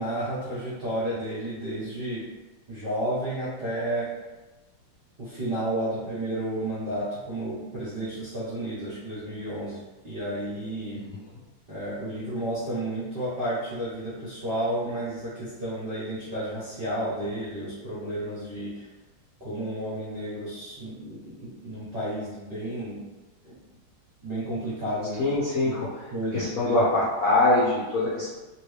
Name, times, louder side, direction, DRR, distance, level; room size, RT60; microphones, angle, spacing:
voice 1, 0.0-2.2 2.7-4.1 5.2-11.0 11.7-18.9 19.4-23.0 23.4-23.6 24.2-25.2 25.6-25.7 26.1-26.7, right 1 dB, 50° right, -10 dB, 0.7 m, -32 dB
voice 2, 25.2-25.9 26.3-28.4, left 2 dB, 65° left, -8 dB, 0.8 m, -23 dB
3.0 x 3.0 x 3.2 m, 1.2 s
omnidirectional pair, 2.3 m